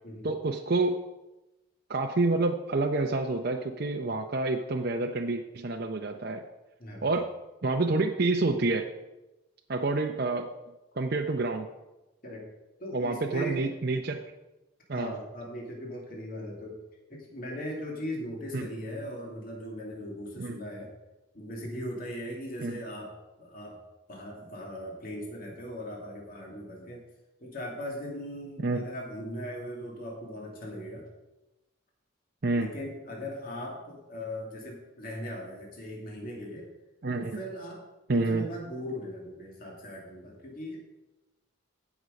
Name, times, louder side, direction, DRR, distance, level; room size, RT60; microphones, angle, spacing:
voice 1, 0.2-1.0 1.9-6.4 7.0-7.3 7.6-8.9 9.7-10.5 11.0-11.7 12.9-14.2 14.9-15.1 18.5-18.7 20.4-20.6 22.6-22.8 28.6-28.8 32.4-32.7 37.0-37.4 38.1-38.5, right 2 dB, 50° right, 3 dB, 0.6 m, -28 dB
voice 2, 6.8-7.1 12.2-12.4 12.8-13.7 14.9-16.8 17.1-20.9 21.3-23.1 23.4-23.8 24.1-27.1 27.4-31.1 32.6-36.7 37.1-37.9 38.1-40.8, equal, 45° left, -1 dB, 2.5 m, -39 dB
14.5 x 6.1 x 5.2 m, 1.0 s
head